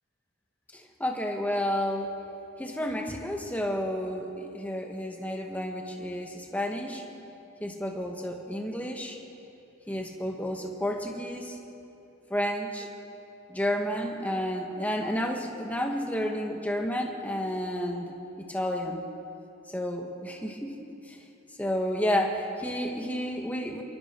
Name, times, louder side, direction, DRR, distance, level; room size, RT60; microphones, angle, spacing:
voice 1, 0.7-2.1 2.6-7.0 7.6-9.2 9.9-11.6 12.3-12.9 13.5-18.1 18.5-19.0 19.7-20.8 21.1-21.2 21.6-23.8, equal, 5° left, 1 dB, 1.9 m, -31 dB
27.5 x 23.0 x 4.8 m, 2.8 s
head